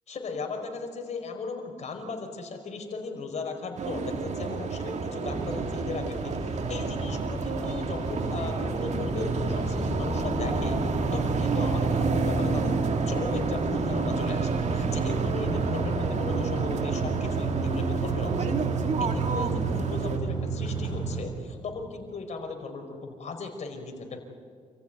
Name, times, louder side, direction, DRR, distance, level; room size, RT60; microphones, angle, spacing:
voice 1, 0.1-10.8 11.1-18.6 19.0-24.2, left 4 dB, 55° left, 4 dB, 4.9 m, -37 dB
sound 1, 3.8-20.2, right 4 dB, 55° right, 2.1 m, -31 dB
sound 2, 5.3-21.2, right 3 dB, 35° right, 7.9 m, -31 dB
28.5 x 15.0 x 9.4 m, 2.2 s
cardioid pair, 90°, 14 cm